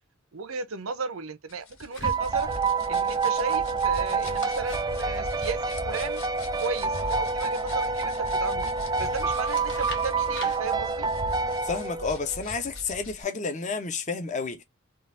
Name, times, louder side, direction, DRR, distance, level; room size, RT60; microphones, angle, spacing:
voice 1, 0.3-2.5 2.9-6.2 6.6-8.1 8.4-8.7 9.0-11.1, right 4 dB, 80° right, 0.8 m, -34 dB
sound 1, 1.5-13.2, equal, 80° left, 2.0 m, -40 dB
sound 2, 1.9-2.7 4.0-6.6 9.0-10.6, left 4 dB, 60° left, 1.7 m, -45 dB
sound 3, 2.0-12.4, right 4 dB, 20° right, 0.3 m, -28 dB
voice 2, 11.6-14.6, left 4 dB, 35° left, 0.8 m, -30 dB
3.9 x 2.5 x 2.5 m
head